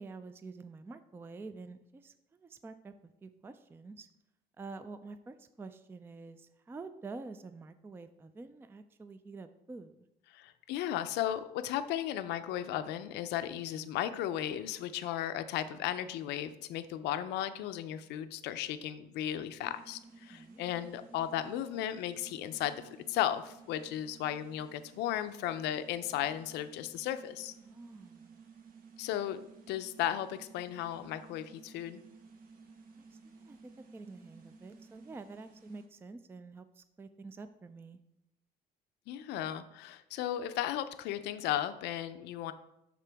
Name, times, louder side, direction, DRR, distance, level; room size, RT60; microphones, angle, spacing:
voice 1, 0.0-2.9 3.2-4.1 4.6-10.1 20.3-20.6 27.6-28.4 33.0-33.6 33.9-38.0, right 3 dB, 15° right, 11 dB, 0.3 m, -48 dB
voice 2, 10.3-22.8 23.1-27.6 29.0-32.0 39.1-42.5, left 11 dB, 85° left, 11 dB, 0.5 m, -35 dB
sound 1, 19.7-35.9, right 4 dB, 55° right, 1.1 m, -56 dB
11.0 x 3.7 x 3.4 m, 0.85 s
cardioid pair, 110°, 17 cm